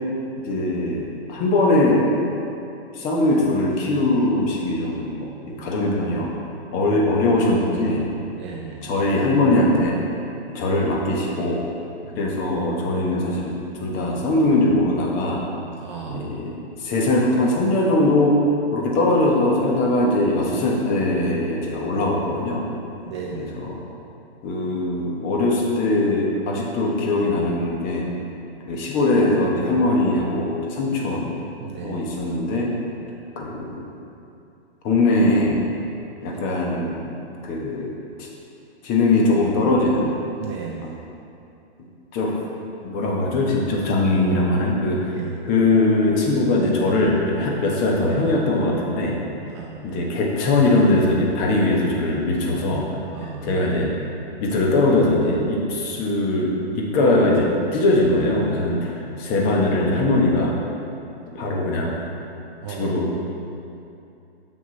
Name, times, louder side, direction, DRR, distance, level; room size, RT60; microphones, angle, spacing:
voice 1, 0.4-2.0 2.9-5.1 5.5-6.3 6.7-8.1 8.8-10.0 10.5-11.6 12.1-15.4 16.1-18.4 18.7-22.6 23.3-23.8 24.4-28.1 28.7-31.3 31.8-32.7 33.4-33.9 34.8-35.6 36.2-37.2 37.4-37.9 38.2-38.3 38.8-40.1 40.8-41.0 42.1-42.4 42.8-45.2 45.4-49.2 49.8-52.9 53.2-53.9 54.4-60.5 61.3-62.0 62.7-63.2, left 2 dB, 25° left, -1 dB, 1.1 m, -21 dB
voice 2, 8.3-8.8 12.0-12.3 15.8-16.2 23.0-23.5 31.6-32.0 36.3-36.4 40.4-41.0 45.2-45.4 49.5-49.8 53.1-53.5 62.6-63.0, right 7 dB, 30° right, -1 dB, 0.5 m, -35 dB
7.5 x 6.2 x 4.0 m, 2.7 s
hypercardioid pair, 140°, 32 cm